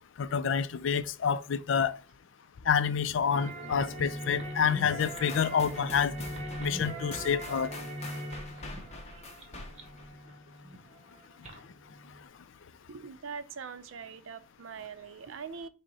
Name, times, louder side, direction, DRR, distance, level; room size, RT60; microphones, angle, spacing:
voice 1, 0.2-1.9 2.7-6.1 6.6-7.7, left 7 dB, 65° left, 0.4 m, -28 dB
sound 1, 3.3-12.3, right 1 dB, 35° right, 0.9 m, -41 dB
sound 2, 5.0-10.1, left 2 dB, 30° left, 0.7 m, -45 dB
voice 2, 12.9-15.7, right 6 dB, 70° right, 0.5 m, -42 dB
6.2 x 2.1 x 4.0 m
head